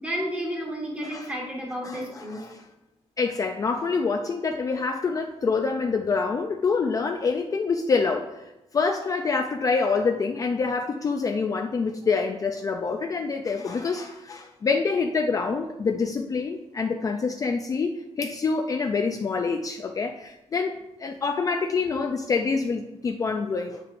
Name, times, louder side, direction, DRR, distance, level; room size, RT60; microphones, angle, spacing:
voice 1, 0.0-2.4, equal, 10° right, -2 dB, 1.5 m, -31 dB
voice 2, 1.8-2.7 3.2-20.7 21.0-23.8, left 4 dB, 30° left, 4 dB, 0.3 m, -26 dB
8.4 x 5.8 x 2.5 m, 0.98 s
wide cardioid pair, 175°, 12 cm